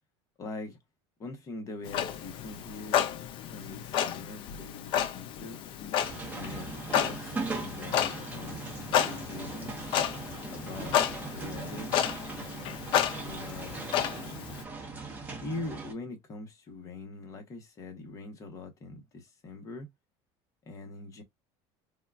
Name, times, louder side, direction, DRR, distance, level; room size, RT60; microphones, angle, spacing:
voice 1, 0.4-0.8 1.2-3.1 3.5-5.6 6.3-9.7 10.5-11.9 13.1-13.7 15.4-19.9 20.7-21.2, left 3 dB, 25° left, 0.8 m, -43 dB
Clock, 1.9-14.6, left 10 dB, 40° left, 0.4 m, -32 dB
sound 1, 6.0-15.9, right 4 dB, 10° right, 0.9 m, -39 dB
3.6 x 2.2 x 2.2 m
cardioid pair, 160°, 13 cm